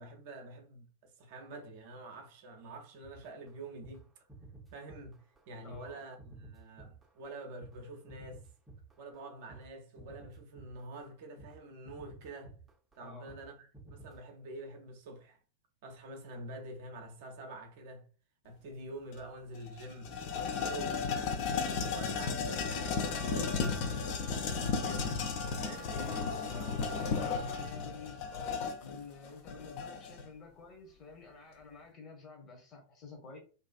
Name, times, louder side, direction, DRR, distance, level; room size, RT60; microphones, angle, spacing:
voice 1, 0.0-4.0 4.7-5.2 5.5-8.4 9.0-12.5 13.0-15.4 15.8-18.1 18.4-21.1 21.9-25.1 25.6-25.9, right 1 dB, 50° right, 0.5 m, -47 dB
sound 1, 3.0-9.7 10.0-11.1 11.4-11.6 11.9-13.0 13.3-13.5 13.7-14.2, right 3 dB, 10° right, 0.6 m, -53 dB
voice 2, 5.6-6.0 13.0-13.3 25.9-33.4, left 4 dB, 30° left, 0.9 m, -50 dB
sound 2, 19.1-19.2 19.6-30.3, left 5 dB, 45° left, 0.4 m, -34 dB
Wind instrument woodwind instrument, 22.5-27.7, left 1 dB, 80° left, 1.1 m, -49 dB
2.5 x 2.3 x 2.3 m
figure-of-eight pair, 90°, 0 cm